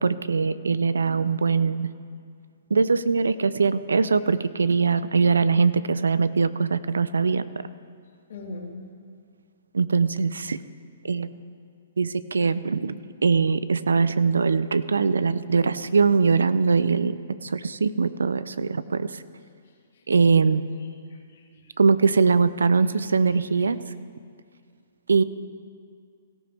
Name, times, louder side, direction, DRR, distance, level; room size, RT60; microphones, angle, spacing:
voice 1, 0.0-1.9 2.7-7.7 9.7-10.6 11.0-11.3 12.0-19.2 20.1-20.6 21.8-23.8 25.1-25.2, right 5 dB, 90° right, 16 dB, 0.5 m, -22 dB
voice 2, 8.3-8.7 21.1-21.4, left 2 dB, 70° left, -2 dB, 3.0 m, -39 dB
17.5 x 14.0 x 3.5 m, 2.2 s
hypercardioid pair, 135°, 0 cm